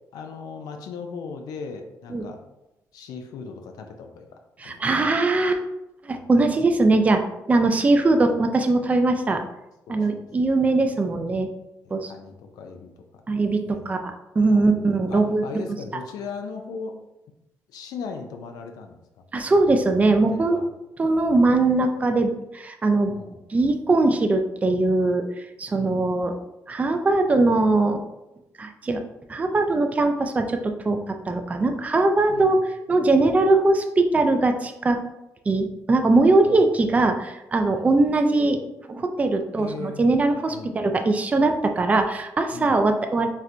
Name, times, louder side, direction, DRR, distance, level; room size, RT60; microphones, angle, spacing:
voice 1, 0.1-2.4 2.9-4.3 4.6-4.8 6.1-6.2 8.2-8.3 9.9-10.2 11.9-13.0 13.6-14.0 14.5-14.8 15.1-16.9 17.7-19.2 20.3-20.7 23.0-23.4 25.7-26.0 32.3-32.6 36.4-36.7 37.7-37.9 39.6-40.1 40.5-40.9 42.5-42.8, left 5 dB, 80° left, 4 dB, 0.4 m, -38 dB
voice 2, 4.6-5.6 6.0-9.4 9.9-11.5 11.9-12.1 13.3-15.6 19.3-20.6 21.0-23.1 23.5-26.3 26.7-28.0 28.6-29.0 29.3-35.0 35.5-38.6 38.9-43.3, right 2 dB, 20° right, 6 dB, 0.3 m, -21 dB
4.2 x 2.1 x 2.5 m, 0.92 s
cardioid pair, 95°, 6 cm